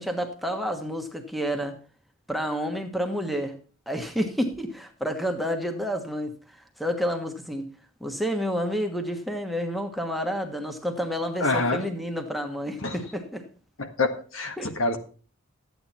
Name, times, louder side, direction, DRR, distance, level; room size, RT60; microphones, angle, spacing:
voice 1, 0.0-1.8 2.3-3.6 3.9-7.7 8.0-13.5 14.6-14.7, equal, ahead, 1.3 m, -29 dB
voice 2, 11.4-11.8 12.8-13.0 13.8-15.0, left 3 dB, 70° left, 1.6 m, -26 dB
13.0 x 9.2 x 4.3 m
head